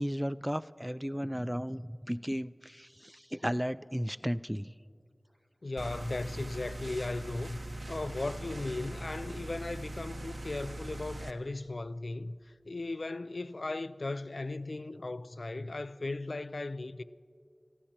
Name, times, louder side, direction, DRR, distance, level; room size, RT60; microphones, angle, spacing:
voice 1, 0.0-4.7, equal, 5° right, 0.3 m, -34 dB
voice 2, 5.6-7.6 7.9-17.0, left 2 dB, 75° left, 0.3 m, -37 dB
sound 1, 5.8-11.3, right 1 dB, 65° right, 0.9 m, -41 dB
29.5 x 15.0 x 2.9 m
wide cardioid pair, 55°, 0 cm